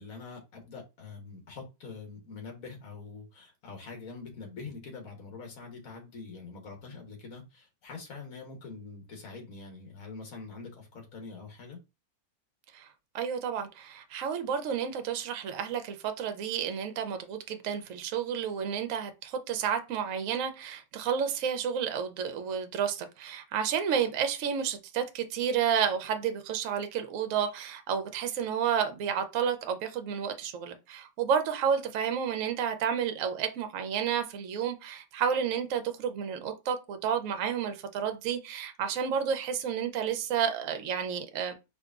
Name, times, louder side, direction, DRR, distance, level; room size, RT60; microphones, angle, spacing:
voice 1, 0.0-11.8, left 4 dB, 55° left, 1.5 m, -44 dB
voice 2, 13.1-41.5, right 7 dB, 65° right, 0.9 m, -31 dB
4.8 x 2.6 x 2.4 m
omnidirectional pair, 1.8 m